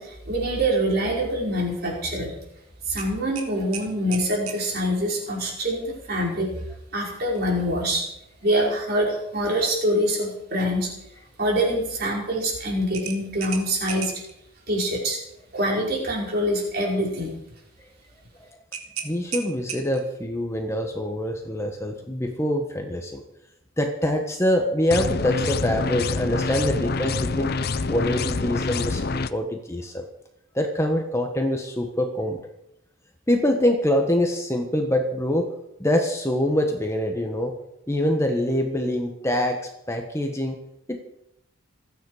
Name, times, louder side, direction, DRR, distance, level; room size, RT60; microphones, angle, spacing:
voice 1, 0.0-2.3 2.9-6.5 6.9-8.0 8.4-10.9 11.4-14.1 14.7-15.2 15.5-17.3, equal, 45° right, -2 dB, 5.2 m, -25 dB
sound 1, 3.0-4.6 7.3-7.5 7.9-8.0 12.9-14.3 18.7-20.2, right 7 dB, 85° right, 2.3 m, -35 dB
voice 2, 19.0-23.2 23.8-27.5 27.9-30.0 30.5-32.4 33.3-35.5 35.8-37.5 37.9-40.6 40.9-41.0, left 1 dB, 15° left, 3 dB, 1.3 m, -24 dB
sound 2, 24.9-29.3, left 3 dB, 45° left, 0.6 m, -26 dB
26.5 x 9.5 x 5.0 m, 0.81 s
head